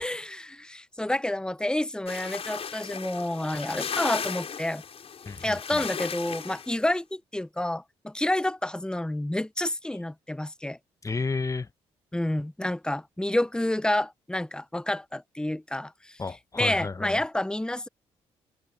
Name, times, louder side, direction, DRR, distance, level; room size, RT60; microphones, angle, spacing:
voice 1, 0.0-4.8 5.4-10.8 12.1-16.2 16.6-17.9, left 1 dB, 5° left, 0.8 m, -29 dB
sound 1, 2.1-6.8, left 7 dB, 55° left, 6.1 m, -36 dB
voice 2, 5.2-5.8 11.0-11.7 16.2-17.2, left 4 dB, 25° left, 1.1 m, -32 dB
supercardioid pair, 55°, 12 cm